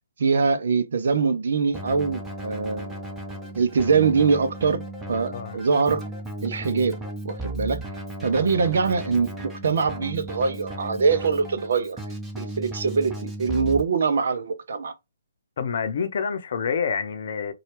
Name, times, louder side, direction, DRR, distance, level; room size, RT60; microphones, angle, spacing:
voice 1, 0.2-2.9 3.6-6.1 6.4-7.8 8.2-12.0 12.4-14.9, right 5 dB, 55° right, 0.6 m, -23 dB
Keyboard (musical), 1.7-13.8, right 1 dB, 5° right, 0.9 m, -35 dB
voice 2, 15.6-17.5, left 6 dB, 50° left, 0.7 m, -27 dB
4.2 x 2.3 x 3.1 m
figure-of-eight pair, 130°, 0 cm